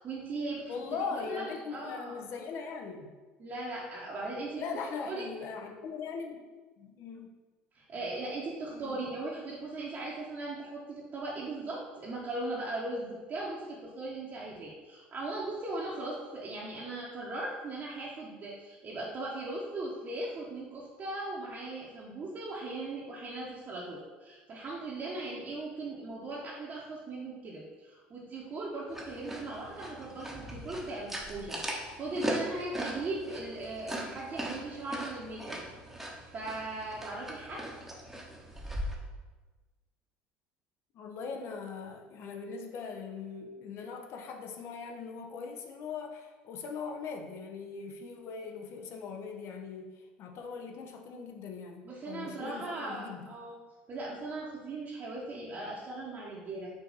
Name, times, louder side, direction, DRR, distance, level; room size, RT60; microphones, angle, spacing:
voice 1, 0.0-0.7 1.3-2.2 3.4-5.2 7.7-35.6 36.3-37.7 51.8-53.5 53.9-56.7, right 2 dB, 40° right, -6 dB, 0.9 m, -38 dB
voice 2, 0.7-3.1 4.6-6.4 6.8-7.3 8.7-9.0 40.9-53.3, left 5 dB, 55° left, 3 dB, 0.7 m, -40 dB
sound 1, 28.9-39.0, right 1 dB, 5° right, 0.9 m, -39 dB
4.9 x 2.8 x 3.9 m, 1.3 s
hypercardioid pair, 80°, 5 cm